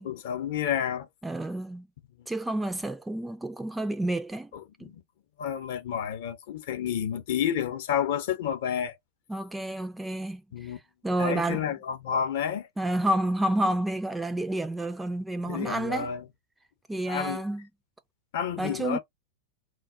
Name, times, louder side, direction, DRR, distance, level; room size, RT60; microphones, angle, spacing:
voice 1, 0.0-1.1 4.8-5.0 5.4-9.0 10.5-10.8 11.2-12.7 15.5-16.2 17.1-17.4 18.3-19.0, left 9 dB, 55° left, 0.6 m, -30 dB
voice 2, 1.2-1.9 2.3-4.5 4.8-4.9 9.3-10.4 11.0-11.7 12.8-16.1 16.9-17.7 18.6-19.0, right 1 dB, 5° right, 0.3 m, -29 dB
2.2 x 2.0 x 3.6 m
figure-of-eight pair, 90°, 0 cm